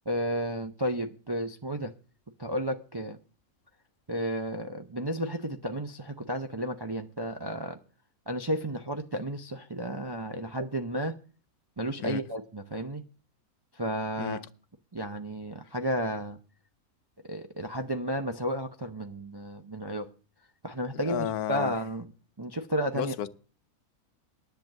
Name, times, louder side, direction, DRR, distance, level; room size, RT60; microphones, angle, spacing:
voice 1, 0.1-1.9 2.4-3.2 4.1-7.8 8.3-11.1 11.8-13.0 13.7-14.4 14.9-16.4 17.2-20.1 20.6-22.1 22.4-23.2, equal, 40° right, 0.3 m, -32 dB
voice 2, 20.9-21.8 22.9-23.3, left 10 dB, 85° left, 1.2 m, -33 dB
10.5 x 7.0 x 7.5 m
omnidirectional pair, 1.6 m